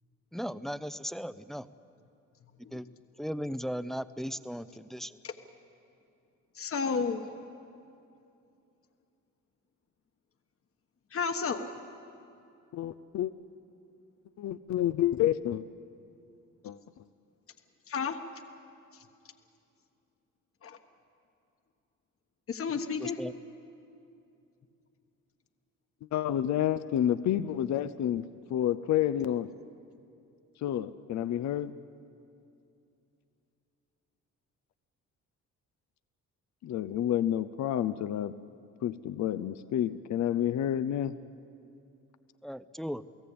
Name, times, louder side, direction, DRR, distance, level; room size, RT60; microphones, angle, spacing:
voice 1, 0.3-1.7 2.7-2.9 3.2-5.2 23.0-23.3 42.4-43.0, equal, ahead, 13 dB, 0.7 m, -37 dB
voice 2, 6.5-7.2 11.1-11.7 17.9-18.2 20.6-20.8 22.5-23.2, left 5 dB, 45° left, 6 dB, 1.4 m, -31 dB
voice 3, 12.7-13.3 14.4-15.6 16.6-16.8 26.1-29.5 30.6-31.7 36.6-38.3 38.8-41.2, left 11 dB, 65° left, 13 dB, 0.7 m, -29 dB
29.0 x 17.5 x 8.6 m, 2.7 s
cardioid pair, 90°, 30 cm